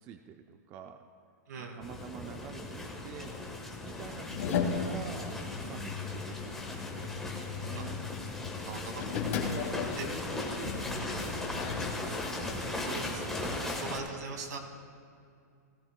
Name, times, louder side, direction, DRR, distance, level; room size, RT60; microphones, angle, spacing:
voice 1, 0.0-1.0 1.6-3.4 3.8-8.0 10.5-11.9, right 8 dB, 25° right, 6 dB, 0.4 m, -47 dB
voice 2, 1.5-1.8 7.8-10.4 12.1-14.6, right 4 dB, 75° right, 3 dB, 2.1 m, -43 dB
sound 1, 1.8-14.0, left 2 dB, 5° left, 1.2 m, -38 dB
sound 2, 2.7-12.0, left 6 dB, 55° left, 2.0 m, -37 dB
sound 3, 5.0-10.0, left 3 dB, 20° left, 2.8 m, -57 dB
18.0 x 15.5 x 2.2 m, 2.4 s
hypercardioid pair, 160°, 9 cm